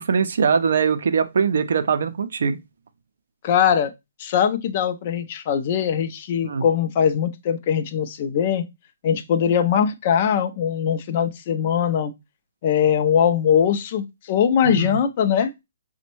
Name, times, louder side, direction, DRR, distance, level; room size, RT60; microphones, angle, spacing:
voice 1, 0.0-2.6 6.4-6.6 14.6-15.0, right 6 dB, 65° right, 0.4 m, -21 dB
voice 2, 3.4-3.9 4.2-8.6 9.0-12.1 12.6-15.5, left 8 dB, 40° left, 0.4 m, -21 dB
5.1 x 2.1 x 2.9 m
hypercardioid pair, 160°, 0 cm